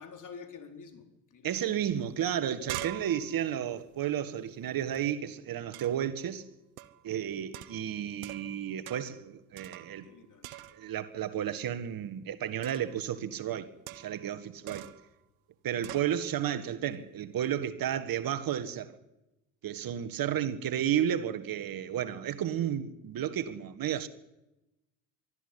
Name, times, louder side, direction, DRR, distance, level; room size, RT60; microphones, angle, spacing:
voice 1, 0.0-1.5 10.0-10.6 20.1-20.3, left 5 dB, 45° left, 4.3 m, -49 dB
voice 2, 1.4-6.5 7.0-10.1 10.7-14.9 15.6-19.0 19.6-24.1, right 10 dB, 55° right, 1.8 m, -32 dB
sound 1, 1.9-2.0 2.3-5.0 5.7-6.1 6.8-7.1 7.5-8.6 8.9-9.2 9.6-10.1 10.4-11.0 12.6-13.0 13.9-14.3 14.7-15.1 15.8-16.1, right 15 dB, 90° right, 1.1 m, -44 dB
23.5 x 13.0 x 10.0 m
hypercardioid pair, 60°, 41 cm